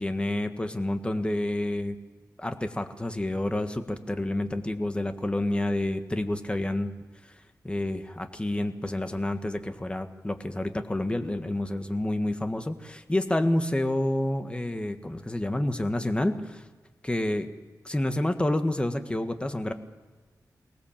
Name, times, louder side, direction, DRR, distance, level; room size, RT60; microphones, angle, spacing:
voice 1, 0.0-1.9 2.4-6.9 7.6-16.6 17.0-17.5 17.8-19.7, left 1 dB, 15° left, 7 dB, 1.5 m, -29 dB
23.5 x 19.5 x 7.4 m, 1.3 s
wide cardioid pair, 100°, 7 cm